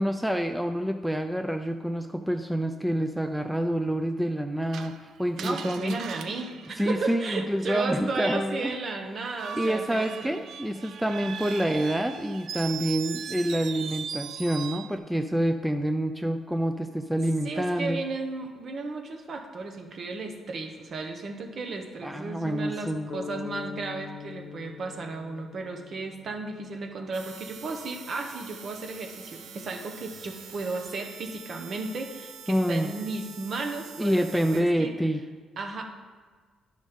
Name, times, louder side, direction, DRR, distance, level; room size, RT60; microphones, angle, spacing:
voice 1, 0.0-6.0 6.8-8.8 9.6-18.0 22.0-23.1 32.5-32.9 34.0-35.2, equal, 5° right, 6 dB, 0.4 m, -27 dB
Screech, 4.7-7.6 9.3-15.0, right 7 dB, 70° right, 0.4 m, -39 dB
voice 2, 5.4-10.4 11.2-11.3 17.4-34.9 35.6-35.8, right 3 dB, 50° right, 4 dB, 1.1 m, -34 dB
sound 1, 23.1-27.0, left 7 dB, 65° left, 0.9 m, -42 dB
sound 2, 27.1-34.6, right 6 dB, 90° right, 0.8 m, -45 dB
9.9 x 6.3 x 3.6 m, 1.5 s
cardioid pair, 90°, 0 cm